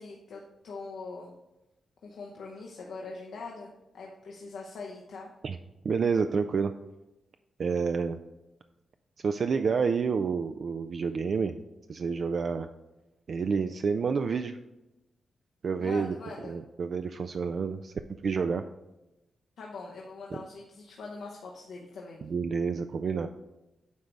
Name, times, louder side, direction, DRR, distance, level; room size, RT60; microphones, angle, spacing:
voice 1, 0.0-1.3 2.0-5.3 15.8-16.5 19.6-22.2, left 3 dB, 80° left, -2 dB, 0.9 m, -42 dB
voice 2, 5.8-6.7 7.6-8.2 9.2-11.6 11.9-12.7 13.3-14.6 15.6-16.2 16.5-17.9 18.2-18.6 20.3-20.4 22.2-23.3, right 5 dB, 60° right, 7 dB, 0.3 m, -29 dB
9.4 x 3.4 x 5.1 m, 0.98 s
cardioid pair, 75°, 0 cm